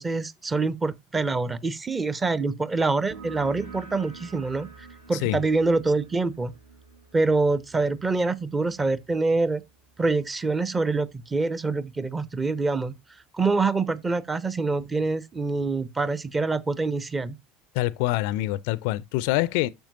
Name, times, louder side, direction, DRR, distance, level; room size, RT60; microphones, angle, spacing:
voice 1, 0.0-6.5 7.1-9.6 10.0-13.0 13.3-17.4, right 3 dB, 20° right, 0.8 m, -25 dB
sound 1, 3.1-10.4, right 5 dB, 65° right, 2.3 m, -47 dB
voice 2, 17.7-19.7, left 17 dB, 55° left, 0.4 m, -25 dB
9.1 x 7.3 x 2.6 m
figure-of-eight pair, 70°, 0 cm